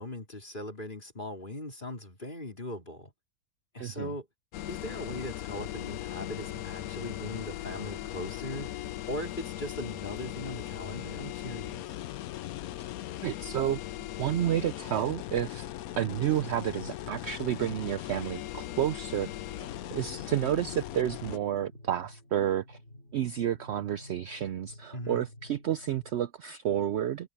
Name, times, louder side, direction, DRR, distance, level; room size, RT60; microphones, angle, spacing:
voice 1, 0.0-3.1 3.7-4.3 4.7-8.7 9.1-12.0 24.9-25.3, left 1 dB, 35° left, 3.9 m, -39 dB
voice 2, 3.8-4.1 12.8-12.9 13.2-13.8 14.2-15.7 16.0-19.3 19.6-19.7 19.9-22.8 23.1-27.3, right 11 dB, 65° right, 0.7 m, -30 dB
sound 1, 4.5-21.4, left 13 dB, 75° left, 1.1 m, -39 dB
sound 2, 19.3-26.1, left 1 dB, 55° left, 6.8 m, -52 dB
omnidirectional pair, 1.5 m